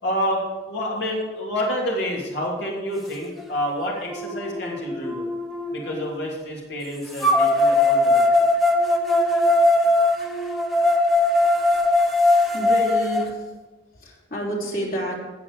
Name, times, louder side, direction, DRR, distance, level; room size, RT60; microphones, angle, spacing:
voice 1, 0.0-5.3 5.7-8.5, equal, 65° left, -3 dB, 3.1 m, -28 dB
sound 1, 3.4-3.5 4.1-6.0 7.2-13.2, left 2 dB, ahead, 1.2 m, -20 dB
voice 2, 12.0-13.5 13.9-15.2, equal, 50° left, -2 dB, 3.5 m, -30 dB
18.5 x 7.2 x 5.0 m, 1.2 s
head